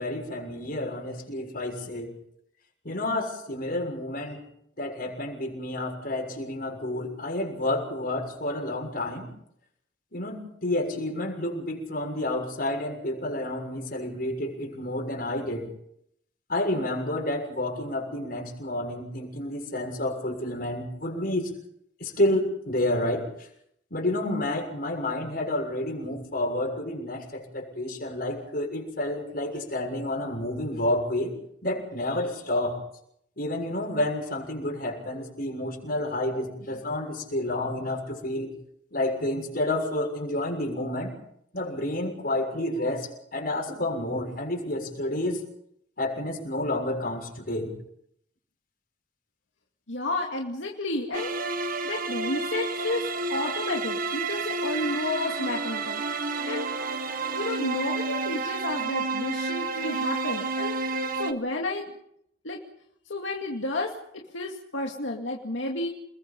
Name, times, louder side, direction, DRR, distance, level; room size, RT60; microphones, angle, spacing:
voice 1, 0.0-2.1 2.8-4.4 4.8-9.3 10.1-15.7 16.5-21.5 22.0-23.5 23.9-31.3 31.6-32.8 33.4-38.5 38.9-41.1 41.5-45.4 46.0-47.7, left 1 dB, 50° left, 1 dB, 6.7 m, -30 dB
voice 2, 49.9-51.3 51.8-53.0 53.3-56.0 56.5-56.7 57.3-60.8 61.1-61.9 62.4-62.6 63.1-65.9, left 2 dB, 90° left, 0 dB, 2.4 m, -31 dB
sound 1, 51.1-61.3, right 3 dB, 50° right, 1.6 m, -30 dB
30.0 x 21.0 x 5.5 m, 0.73 s
head